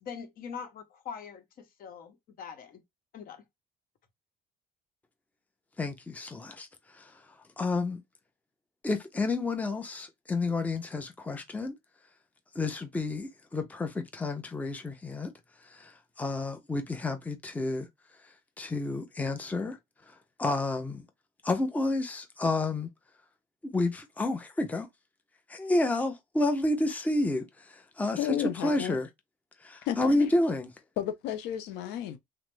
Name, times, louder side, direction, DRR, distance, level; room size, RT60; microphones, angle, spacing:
voice 1, 0.0-2.8 3.1-3.4, left 7 dB, 60° left, 0.9 m, -43 dB
voice 2, 5.8-6.7 6.9-7.1 7.6-8.0 8.8-11.7 12.5-15.3 15.7-17.9 18.6-19.8 20.1-20.2 20.4-21.0 21.4-22.9 23.6-24.9 25.5-28.2 28.6-29.1 29.6-30.7, left 2 dB, 10° left, 0.5 m, -30 dB
voice 3, 28.2-29.0 29.9-30.3 31.0-32.2, left 11 dB, 90° left, 0.5 m, -32 dB
3.1 x 2.0 x 3.1 m
cardioid pair, 110°, 17 cm